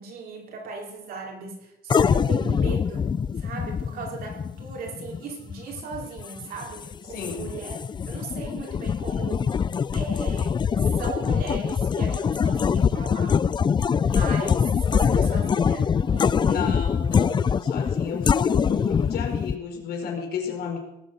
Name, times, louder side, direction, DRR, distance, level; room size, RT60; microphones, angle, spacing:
voice 1, 0.0-7.8 8.0-9.6 9.9-13.4 14.0-16.7, right 4 dB, 65° right, 0 dB, 5.0 m, -37 dB
sound 1, 1.9-19.6, left 6 dB, 25° left, 0.4 m, -24 dB
voice 2, 7.1-7.4 16.2-20.8, left 6 dB, 70° left, 2 dB, 4.5 m, -32 dB
18.5 x 8.3 x 7.9 m, 0.85 s
cardioid pair, 110°, 17 cm